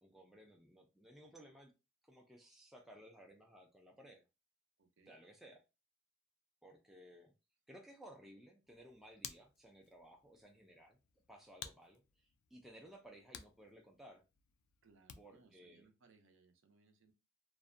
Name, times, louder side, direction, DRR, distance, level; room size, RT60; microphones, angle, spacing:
voice 1, 0.0-1.7 2.1-4.2 5.1-5.6 6.6-7.3 7.7-11.0 11.3-14.2 15.2-15.9, right 1 dB, ahead, 0.3 m, -58 dB
voice 2, 4.8-5.2 14.8-17.1, right 4 dB, 60° right, 0.5 m, -68 dB
Hands, 8.6-15.5, left 9 dB, 75° left, 0.3 m, -56 dB
2.5 x 2.1 x 2.4 m
head